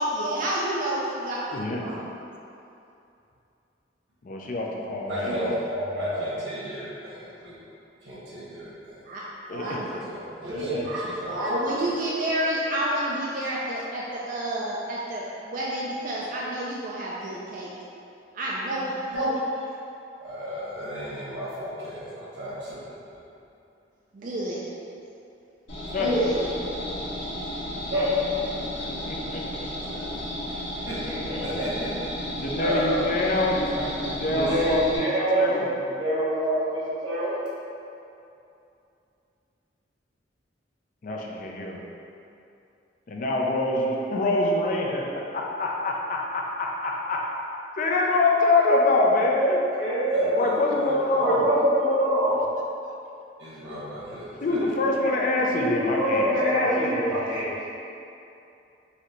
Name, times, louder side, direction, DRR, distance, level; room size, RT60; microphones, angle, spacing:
voice 1, 0.0-1.4 1.8-2.1 9.1-9.2 9.5-10.0 10.4-10.5 11.5-17.7 18.3-19.0 24.1-24.6, right 1 dB, 45° right, -5 dB, 0.4 m, -29 dB
voice 2, 1.5-1.9 4.2-5.4 9.5-9.9 25.9-26.1 29.1-29.7 32.4-35.1 35.3-35.7 41.0-41.8 43.1-47.3 47.8-49.6 50.4-51.5 54.4-56.3 56.5-56.8, left 2 dB, 45° left, -1 dB, 0.4 m, -25 dB
voice 3, 5.0-7.5 8.0-9.0 9.8-11.7 12.2-12.3 19.1-19.4 20.2-22.9 26.0-26.3 27.9-28.2 28.5-28.6 30.8-31.9 32.6-33.8 34.2-35.7 36.0-37.4 49.7-50.8 51.2-52.4 53.4-54.6 55.6-57.7, equal, 90° right, -9 dB, 1.5 m, -28 dB
sound 1, 25.7-35.0, equal, 85° left, 1.3 m, -33 dB
4.1 x 2.7 x 3.1 m, 2.7 s
head